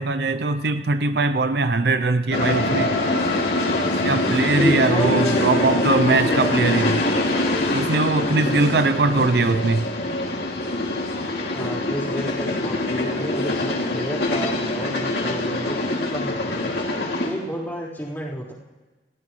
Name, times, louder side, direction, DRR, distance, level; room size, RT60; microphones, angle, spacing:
voice 1, 0.0-2.9 4.0-7.0 7.7-9.8, right 3 dB, 65° right, 11 dB, 0.6 m, -21 dB
sound 1, 2.3-17.3, left 2 dB, 65° left, 2.5 m, -24 dB
voice 2, 4.4-5.8 6.2-6.9 9.1-9.3 11.5-16.7 17.2-18.5, equal, 10° left, -8 dB, 4.1 m, -30 dB
27.5 x 15.0 x 3.2 m, 1.2 s
head